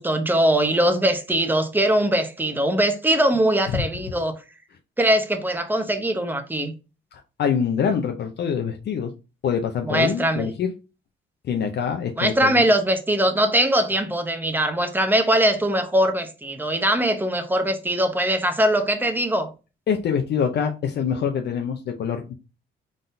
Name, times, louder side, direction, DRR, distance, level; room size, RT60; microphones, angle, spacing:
voice 1, 0.0-4.3 5.0-6.7 9.8-10.5 12.2-19.5, right 1 dB, 10° right, 0.8 m, -21 dB
voice 2, 7.1-9.1 9.4-10.7 11.5-12.6 19.9-22.3, left 7 dB, 60° left, 0.6 m, -25 dB
3.9 x 3.7 x 2.6 m
cardioid pair, 90°, 20 cm